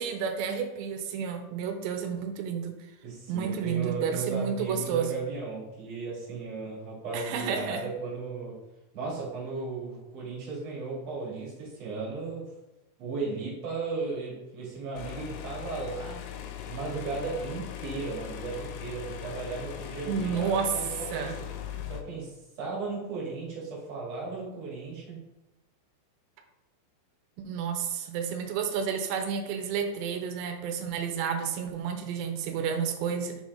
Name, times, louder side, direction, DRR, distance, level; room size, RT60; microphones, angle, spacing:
voice 1, 0.0-2.7 3.3-5.1 7.1-7.8 20.1-20.7 21.1-21.3 27.4-33.4, right 7 dB, 80° right, 4 dB, 2.8 m, -31 dB
voice 2, 3.0-8.6 8.9-12.5 13.0-16.3 16.7-21.3 21.8-25.3, right 4 dB, 40° right, -6 dB, 3.1 m, -36 dB
sound 1, 15.0-22.0, left 10 dB, 80° left, 2.9 m, -39 dB
6.6 x 4.9 x 4.0 m, 1.0 s
omnidirectional pair, 5.4 m